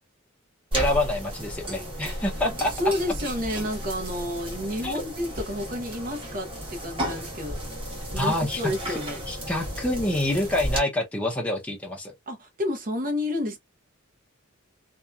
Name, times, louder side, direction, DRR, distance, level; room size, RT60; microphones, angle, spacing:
voice 1, 0.7-2.7 4.8-4.9 8.2-8.6 8.9-9.0 9.3-12.1, left 1 dB, 5° left, 0.6 m, -27 dB
sound 1, 0.7-10.8, equal, 25° right, 1.2 m, -34 dB
voice 2, 2.4-7.6 8.1-9.2 12.3-13.6, left 1 dB, 40° right, 0.8 m, -30 dB
2.7 x 2.3 x 2.3 m
head